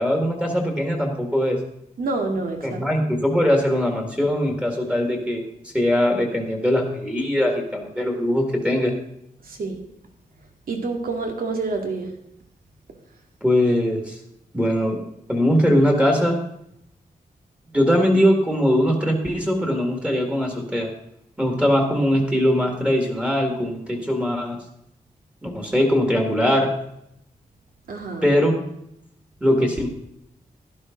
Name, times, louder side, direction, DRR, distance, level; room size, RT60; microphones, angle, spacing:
voice 1, 0.0-1.6 2.6-5.4 5.7-8.9 13.4-14.2 14.5-15.0 15.3-16.4 17.7-20.9 21.4-24.6 25.4-26.7 28.2-28.6 29.4-29.9, equal, 5° right, 1 dB, 1.9 m, -21 dB
voice 2, 2.0-2.8 9.4-9.8 10.7-12.1 27.9-28.3, right 3 dB, 80° right, 3 dB, 2.1 m, -27 dB
12.0 x 11.5 x 3.8 m, 0.76 s
wide cardioid pair, 180°, 15 cm